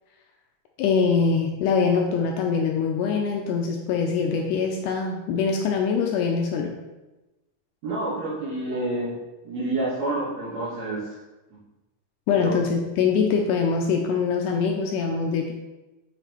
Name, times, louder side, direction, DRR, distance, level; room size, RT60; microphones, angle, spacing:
voice 1, 0.8-6.8 12.3-15.5, left 5 dB, 80° left, 2 dB, 1.9 m, -23 dB
voice 2, 7.8-9.1 9.4-11.2 12.4-12.5, right 2 dB, 60° right, -7 dB, 2.3 m, -28 dB
6.3 x 5.0 x 3.0 m, 1.1 s
omnidirectional pair, 4.0 m